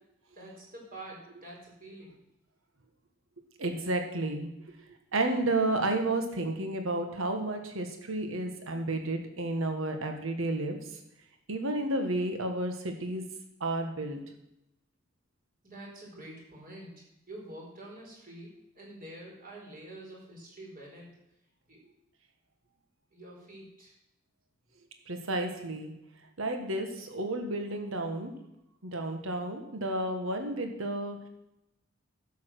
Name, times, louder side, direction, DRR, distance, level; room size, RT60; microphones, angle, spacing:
voice 1, 0.4-2.2 15.6-21.1 21.7-21.8 23.1-23.9, right 1 dB, 45° right, -2 dB, 4.4 m, -47 dB
voice 2, 3.6-4.5 5.1-10.8 11.5-13.2 13.6-14.2 25.1-25.9 26.4-28.3 28.8-31.2, right 2 dB, 90° right, 5 dB, 1.4 m, -31 dB
12.0 x 7.4 x 6.3 m, 0.86 s
head